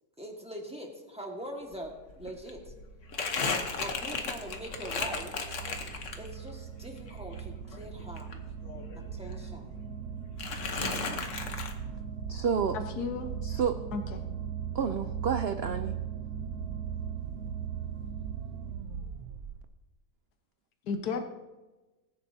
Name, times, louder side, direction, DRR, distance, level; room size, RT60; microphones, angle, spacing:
voice 1, 0.2-2.7 3.4-5.3 6.2-8.3 9.1-9.8, equal, 5° right, 0 dB, 1.5 m, -42 dB
Crumpling crinkling, 1.7-1.8 2.1-6.5 6.9-9.1 9.3-10.1 10.4-11.7, left 4 dB, 50° left, 1.3 m, -35 dB
sound 1, 2.1-19.7, right 7 dB, 65° right, 1.2 m, -39 dB
voice 2, 10.8-11.3 12.3-12.8 13.4-13.8 14.7-16.0, right 7 dB, 90° right, 8 dB, 0.5 m, -30 dB
voice 3, 12.7-13.3 13.9-14.3 20.9-21.2, left 5 dB, 70° left, 6 dB, 1.6 m, -33 dB
18.5 x 10.0 x 2.8 m, 1.1 s
omnidirectional pair, 1.8 m